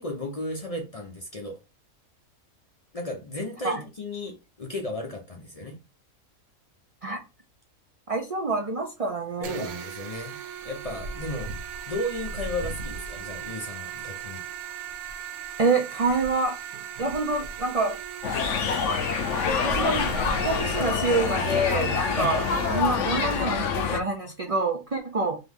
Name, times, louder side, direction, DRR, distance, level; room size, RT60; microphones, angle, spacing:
voice 1, 0.0-1.6 2.9-5.8 9.4-10.4 10.6-11.5 11.9-14.4 22.1-22.4, left 1 dB, 40° left, 0.6 m, -34 dB
voice 2, 8.1-9.8 15.6-16.6 17.0-18.0 19.6-25.4, right 3 dB, 65° right, 0.3 m, -27 dB
sound 1, 9.4-22.8, right 10 dB, 80° right, 1.1 m, -38 dB
sound 2, 9.7-9.8 10.1-21.1, right 1 dB, 50° right, 0.7 m, -40 dB
sound 3, 18.2-24.0, left 6 dB, 65° left, 0.9 m, -26 dB
3.8 x 3.0 x 3.6 m
omnidirectional pair, 1.5 m